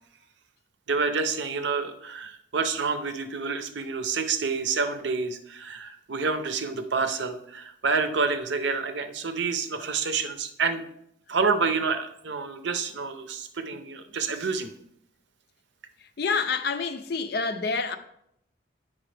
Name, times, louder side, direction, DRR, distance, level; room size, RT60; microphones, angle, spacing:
voice 1, 0.9-10.8 11.3-14.7, right 4 dB, 65° right, 0.7 m, -28 dB
voice 2, 16.2-18.0, left 4 dB, 55° left, 0.5 m, -27 dB
8.8 x 6.0 x 3.3 m
head